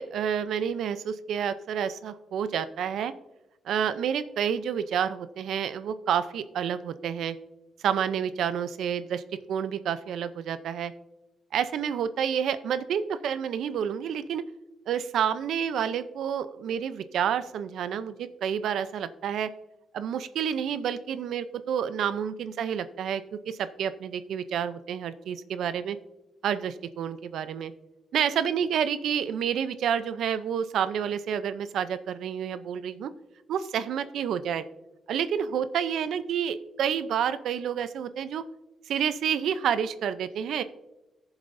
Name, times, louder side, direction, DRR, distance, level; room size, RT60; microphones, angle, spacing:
voice 1, 0.0-3.1 3.7-7.3 7.8-9.2 9.5-10.9 11.5-14.4 14.9-19.5 19.9-26.0 26.4-27.7 28.1-33.1 33.5-34.6 35.1-38.4 38.9-40.6, right 8 dB, 85° right, 12 dB, 0.5 m, -29 dB
18.5 x 7.2 x 2.6 m, 1.0 s
cardioid pair, 130°, 0 cm